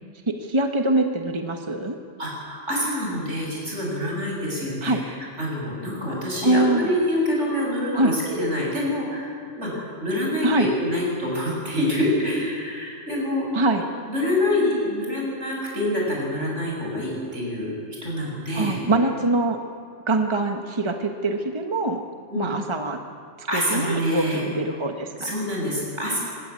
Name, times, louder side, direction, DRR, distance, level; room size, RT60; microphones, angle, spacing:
voice 1, 0.3-2.0 4.8-5.0 6.4-6.9 7.9-8.1 10.4-10.7 13.5-13.8 18.5-19.6 20.1-22.0 22.3-23.0 23.4-25.3, right 2 dB, 25° right, 4 dB, 1.3 m, -23 dB
voice 2, 2.2-13.5 14.1-17.7 18.0-18.8 22.3-22.5 23.5-24.4 25.2-26.2, left 1 dB, 70° right, -3 dB, 8.2 m, -26 dB
25.5 x 20.0 x 8.5 m, 2.1 s
omnidirectional pair, 1.3 m